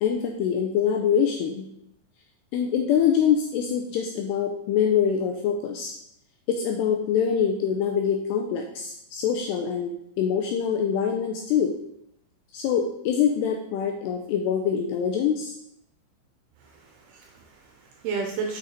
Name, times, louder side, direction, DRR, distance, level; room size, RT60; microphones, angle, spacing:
voice 1, 0.0-1.7 2.5-5.9 6.5-11.7 12.5-15.5, left 8 dB, 90° left, 2 dB, 2.4 m, -24 dB
voice 2, 16.6-18.6, right 5 dB, 80° right, 2 dB, 2.3 m, -33 dB
6.6 x 6.2 x 4.1 m, 0.77 s
omnidirectional pair, 5.4 m